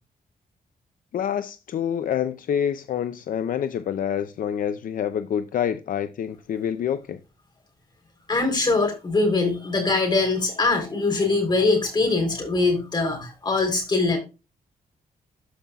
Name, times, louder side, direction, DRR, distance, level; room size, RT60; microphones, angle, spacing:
voice 1, 1.1-7.2, left 9 dB, 65° left, 0.5 m, -27 dB
voice 2, 8.3-14.2, left 3 dB, 30° left, 3.7 m, -22 dB
13.0 x 5.5 x 2.3 m
wide cardioid pair, 135°, 15 cm